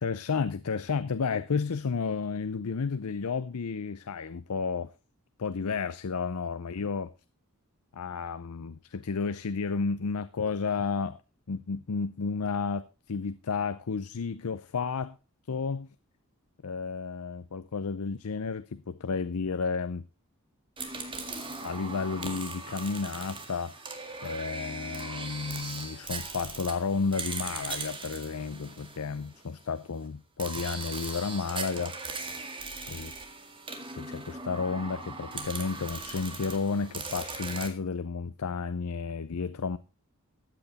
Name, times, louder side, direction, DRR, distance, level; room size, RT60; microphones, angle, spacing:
voice 1, 0.0-4.9 5.4-7.1 7.9-11.2 11.5-15.2 15.5-15.9 16.6-20.0 21.6-23.7 24.2-32.0 32.9-33.1 34.0-39.8, left 5 dB, 85° left, 0.6 m, -32 dB
sound 1, 20.8-29.6 30.4-37.7, right 3 dB, 25° right, 2.0 m, -39 dB
14.0 x 9.0 x 4.1 m
head